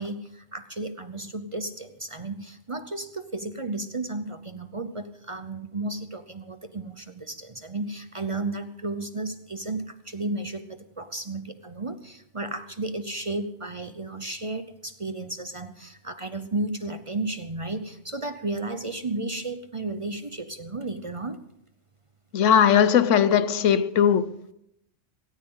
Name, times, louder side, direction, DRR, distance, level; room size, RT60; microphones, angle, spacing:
voice 1, 0.0-21.4, right 2 dB, 30° right, 10 dB, 0.7 m, -33 dB
voice 2, 22.3-24.3, left 8 dB, 80° left, 15 dB, 1.1 m, -19 dB
17.5 x 17.0 x 3.8 m, 0.77 s
omnidirectional pair, 1.3 m